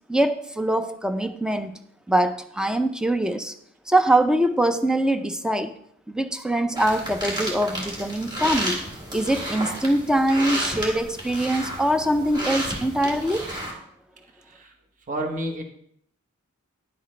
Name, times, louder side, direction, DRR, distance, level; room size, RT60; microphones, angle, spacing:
voice 1, 0.1-1.8 2.1-3.5 3.9-5.8 6.1-8.8 9.1-13.6, right 1 dB, 5° right, 0.4 m, -23 dB
sound 1, 6.8-13.7, right 1 dB, 20° right, 2.4 m, -31 dB
voice 2, 14.3-14.7 15.1-15.6, right 1 dB, 40° right, 1.1 m, -30 dB
10.5 x 8.0 x 3.2 m
head